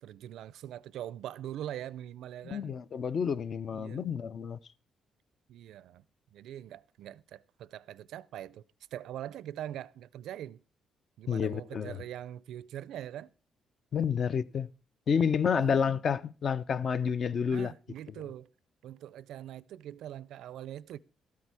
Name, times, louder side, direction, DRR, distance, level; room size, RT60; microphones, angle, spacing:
voice 1, 0.0-2.8 3.7-4.0 5.5-6.0 6.3-8.6 8.9-10.6 11.2-13.3 15.6-16.0 17.5-18.5 18.8-21.0, right 11 dB, 85° right, 0.4 m, -42 dB
voice 2, 2.4-4.6 11.3-12.0 13.9-14.7 15.1-17.7, left 6 dB, 45° left, 0.5 m, -29 dB
13.0 x 8.4 x 4.7 m
cardioid pair, 150°, 0 cm